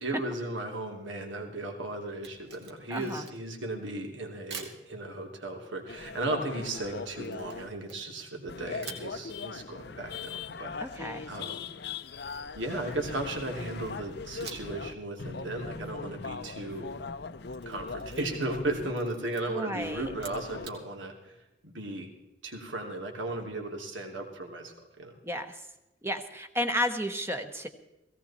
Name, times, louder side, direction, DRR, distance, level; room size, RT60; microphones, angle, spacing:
voice 1, 0.0-11.7 12.5-16.9 17.7-21.4 21.6-22.1 22.4-25.2, right 2 dB, 75° right, 2 dB, 3.0 m, -36 dB
Camera, 2.1-3.6 4.5-4.8 7.2-8.4 8.8-9.1 11.8-13.3 14.4-14.8 15.2-15.3 17.2-18.6 18.9-19.4 20.1-20.8, right 5 dB, 60° right, 2.5 m, -46 dB
voice 2, 2.9-3.3 10.8-11.3 19.5-20.1 25.2-25.6 26.0-27.7, equal, 15° right, 7 dB, 1.0 m, -32 dB
sound 1, 5.9-7.7 8.5-14.9 15.2-18.9 19.8-20.7, left 4 dB, 55° left, 0.7 m, -40 dB
17.0 x 17.0 x 4.3 m, 0.96 s
head